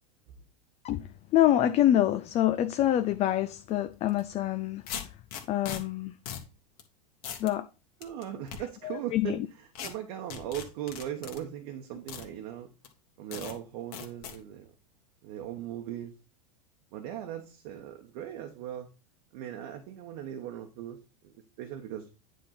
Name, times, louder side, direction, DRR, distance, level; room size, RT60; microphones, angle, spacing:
voice 1, 0.8-4.8 5.5-6.1 7.4-7.6 8.8-9.5, left 12 dB, 30° left, 0.5 m, -26 dB
sound 1, 4.1-4.2 4.9-5.8 6.3-6.5 6.8-6.9 7.2-7.5 8.0-8.6 9.8-9.9 10.3-11.4 12.1-12.3 12.8-12.9 13.3-13.5 13.9-14.4, left 8 dB, 60° left, 1.6 m, -39 dB
voice 2, 8.0-12.7 13.2-14.7 15.2-16.1 16.9-18.9 19.3-21.0 21.2-22.1, right 11 dB, 60° right, 1.1 m, -39 dB
9.3 x 3.5 x 4.3 m
hypercardioid pair, 105°, 21 cm